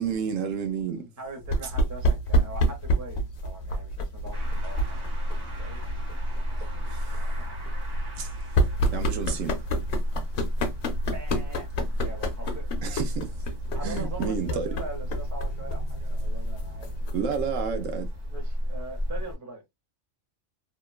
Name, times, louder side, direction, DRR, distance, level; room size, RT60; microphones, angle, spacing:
voice 1, 0.0-1.0 6.9-7.2 8.2-8.3 8.8-9.6 12.8-13.4 13.8-14.7 17.1-18.1, right 7 dB, 80° right, 1.0 m, -30 dB
voice 2, 0.9-5.0 5.3-5.8 7.1-7.6 11.1-11.7 12.0-12.7 13.7-17.2 18.2-19.6, right 2 dB, 20° right, 0.7 m, -42 dB
sound 1, 1.4-17.6, equal, 65° left, 0.9 m, -30 dB
sound 2, 4.3-19.4, equal, 50° right, 1.3 m, -32 dB
2.9 x 2.2 x 2.2 m
omnidirectional pair, 1.3 m